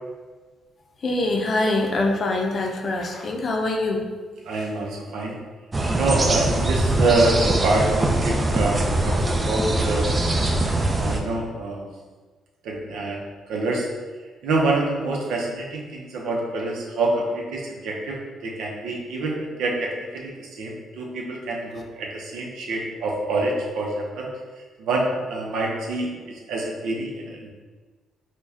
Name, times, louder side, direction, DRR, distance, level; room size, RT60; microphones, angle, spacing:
voice 1, 1.0-4.0, left 2 dB, 45° left, 2 dB, 0.5 m, -24 dB
voice 2, 4.5-5.4 5.9-10.1 10.9-11.9 12.6-13.9 14.4-24.3 24.6-27.5, right 2 dB, 80° right, -1 dB, 0.7 m, -26 dB
sound 1, 5.7-11.2, right 2 dB, 25° right, 0.4 m, -22 dB
4.6 x 2.2 x 2.7 m, 1.4 s
cardioid pair, 90°, 0 cm